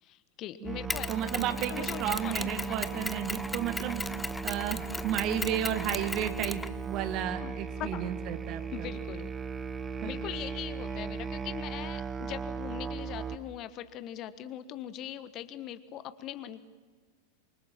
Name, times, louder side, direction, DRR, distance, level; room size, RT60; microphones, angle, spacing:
voice 1, 0.0-1.1 1.4-3.3 7.4-8.1 8.7-9.3 10.0-16.6, left 12 dB, 35° left, 13 dB, 1.3 m, -41 dB
Musical instrument, 0.6-13.4, right 5 dB, 15° right, 1.4 m, -37 dB
voice 2, 0.6-4.0 4.4-8.9 10.0-10.2, right 10 dB, 40° right, 11 dB, 1.8 m, -33 dB
Mechanisms, 0.9-7.2, left 2 dB, 5° left, 0.8 m, -37 dB
27.5 x 24.5 x 7.4 m, 1.4 s
figure-of-eight pair, 90°, 0 cm